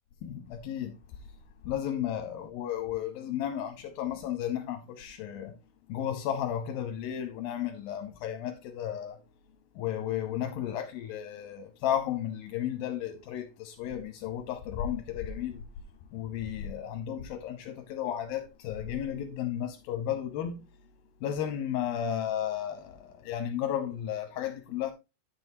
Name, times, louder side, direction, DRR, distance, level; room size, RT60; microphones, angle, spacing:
voice 1, 0.2-1.0 1.6-5.5 5.9-9.2 9.8-15.6 16.1-20.6 21.2-24.9, left 10 dB, 85° left, 2.7 m, -33 dB
10.0 x 7.8 x 2.7 m
omnidirectional pair, 4.1 m